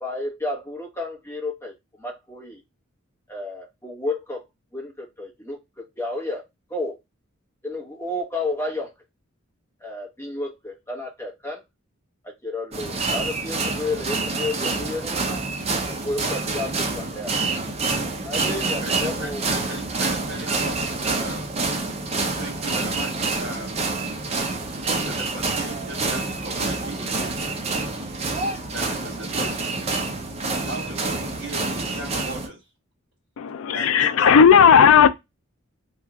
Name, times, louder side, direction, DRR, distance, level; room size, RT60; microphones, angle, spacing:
voice 1, 0.0-2.6 3.3-4.4 4.7-6.4 6.7-7.0 7.6-8.9 9.8-11.6 12.4-15.4 16.0-17.3 18.2-19.4, left 2 dB, 10° left, 0.9 m, -31 dB
sound 1, 12.7-32.5, right 3 dB, 30° right, 0.5 m, -27 dB
voice 2, 18.8-21.5 22.4-23.8 24.8-27.6 28.7-29.8 30.6-32.6 33.7-34.4, right 1 dB, 55° right, 1.4 m, -37 dB
voice 3, 33.4-35.1, left 7 dB, 75° left, 0.4 m, -14 dB
3.0 x 2.4 x 3.5 m
head